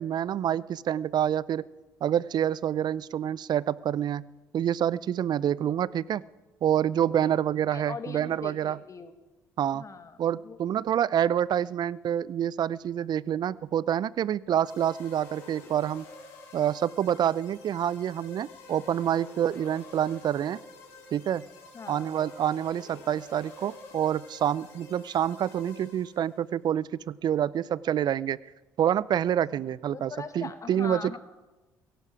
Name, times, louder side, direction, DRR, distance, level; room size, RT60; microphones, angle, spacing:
voice 1, 0.0-1.6 2.0-4.2 4.5-6.2 6.6-8.8 9.6-9.8 10.2-16.0 16.5-20.6 21.1-21.4 21.9-28.4 28.8-31.2, right 10 dB, 50° right, 22 dB, 0.5 m, -27 dB
voice 2, 7.7-9.1 9.7-10.6 21.7-22.1 29.3-31.2, left 5 dB, 35° left, 9 dB, 1.6 m, -41 dB
sound 1, 14.6-26.4, left 2 dB, 75° left, 4.8 m, -48 dB
17.5 x 15.5 x 4.8 m, 1.1 s
hypercardioid pair, 55°, 9 cm